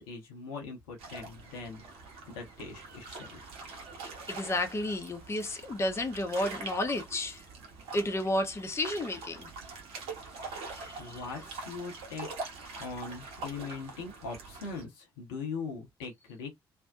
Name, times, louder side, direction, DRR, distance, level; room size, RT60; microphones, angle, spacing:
voice 1, 0.0-1.8 2.3-3.5 11.0-12.3 12.8-16.6, left 4 dB, 70° left, 0.8 m, -41 dB
sound 1, 1.0-14.8, right 3 dB, 60° right, 0.9 m, -44 dB
voice 2, 4.3-7.4 7.9-9.5 10.8-11.2, left 1 dB, 20° left, 0.6 m, -32 dB
2.6 x 2.1 x 2.4 m
figure-of-eight pair, 45°, 12 cm